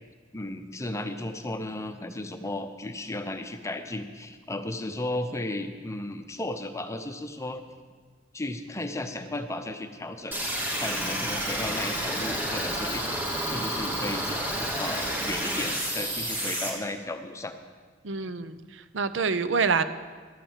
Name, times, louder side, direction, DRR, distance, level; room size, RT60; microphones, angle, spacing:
voice 1, 0.3-7.6 8.3-13.1 13.4-17.6, left 1 dB, 15° left, 8 dB, 0.7 m, -35 dB
sound 1, 10.3-16.7, equal, 10° right, 2.2 m, -30 dB
voice 2, 18.0-18.6 18.9-19.8, right 5 dB, 75° right, 12 dB, 0.6 m, -26 dB
12.5 x 8.9 x 7.2 m, 1.5 s
head